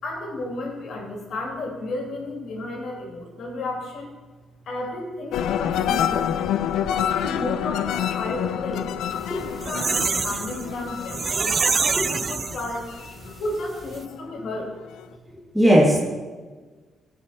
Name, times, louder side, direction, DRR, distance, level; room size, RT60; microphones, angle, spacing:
voice 1, 0.0-4.1 4.7-6.3 6.8-12.9 13.4-14.7, left 2 dB, 65° left, -1 dB, 3.0 m, -33 dB
sound 1, 5.3-14.1 14.5-15.1, left 10 dB, 85° left, 0.4 m, -28 dB
sound 2, 9.2-13.1 13.5-13.6 13.8-14.0, right 5 dB, 40° right, 0.3 m, -25 dB
voice 2, 9.3-9.7 12.0-12.1 15.5-16.0, equal, ahead, -3 dB, 2.0 m, -18 dB
15.0 x 5.7 x 4.5 m, 1.4 s
cardioid pair, 90°, 0 cm